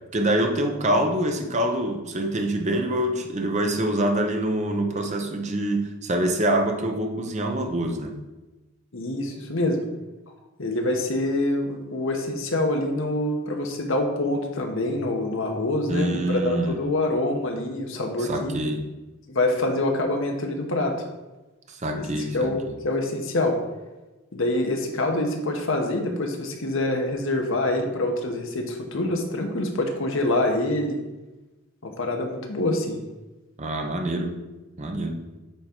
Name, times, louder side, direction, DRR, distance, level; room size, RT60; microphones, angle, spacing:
voice 1, 0.1-8.1 15.9-16.8 18.2-18.8 21.7-22.5 33.6-34.4 34.8-35.2, right 1 dB, 35° right, 3 dB, 0.8 m, -25 dB
voice 2, 8.9-9.8 10.6-18.5 19.3-20.9 21.9-22.0 22.3-23.6 24.3-31.0 31.8-33.0, left 1 dB, 65° left, 3 dB, 1.0 m, -25 dB
8.9 x 3.7 x 4.4 m, 1.1 s
head